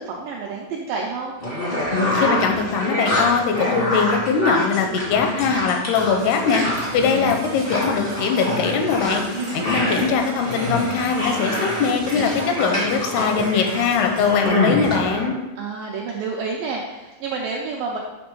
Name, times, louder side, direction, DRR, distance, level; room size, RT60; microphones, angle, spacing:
voice 1, 0.0-1.3 9.4-10.1 15.6-18.0, right 4 dB, 85° right, -1 dB, 2.0 m, -29 dB
sound 1, 1.4-15.3, left 1 dB, 55° left, 0.6 m, -25 dB
voice 2, 2.1-6.6 6.9-9.2 9.5-15.4, left 6 dB, 85° left, 4 dB, 2.6 m, -21 dB
Percussion / Brass instrument, 5.9-14.5, right 2 dB, 70° right, 1.4 m, -38 dB
8.1 x 3.4 x 5.4 m, 1.1 s
omnidirectional pair, 4.8 m